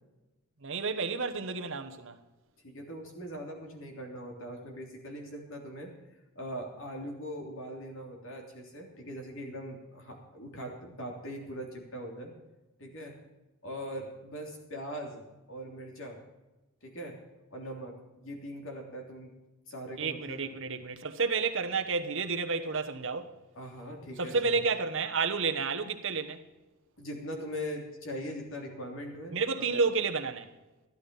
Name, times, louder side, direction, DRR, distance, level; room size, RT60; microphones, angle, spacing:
voice 1, 0.6-2.2 20.0-23.4 24.2-26.4 29.3-30.5, right 4 dB, 60° right, 1.2 m, -30 dB
voice 2, 2.6-5.9 6.3-12.3 12.8-13.2 13.6-16.2 16.8-17.2 17.5-19.3 19.7-20.4 23.5-24.4 27.0-29.7, equal, 60° left, 3.3 m, -41 dB
13.5 x 12.0 x 5.4 m
head